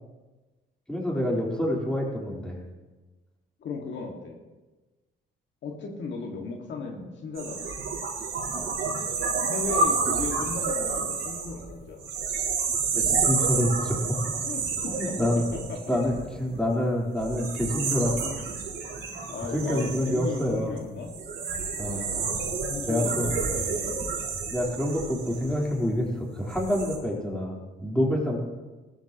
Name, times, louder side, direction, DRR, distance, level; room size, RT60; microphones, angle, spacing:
voice 1, 0.9-2.6 8.5-8.7 12.9-14.0 15.0-15.4 15.9-18.3 19.5-20.8 21.8-22.2 22.9-23.3 24.5-28.4, left 1 dB, 5° left, -3 dB, 4.0 m, -27 dB
voice 2, 3.6-4.4 5.6-7.7 9.3-12.0 14.4-16.0 18.2-18.4 19.1-21.1 21.8-24.1, left 4 dB, 65° left, 1 dB, 2.0 m, -36 dB
sound 1, 7.4-16.6 17.2-25.9 26.4-27.0, right 4 dB, 70° right, 4.0 m, -30 dB
18.5 x 13.5 x 3.0 m, 1.2 s
cardioid pair, 90°, 20 cm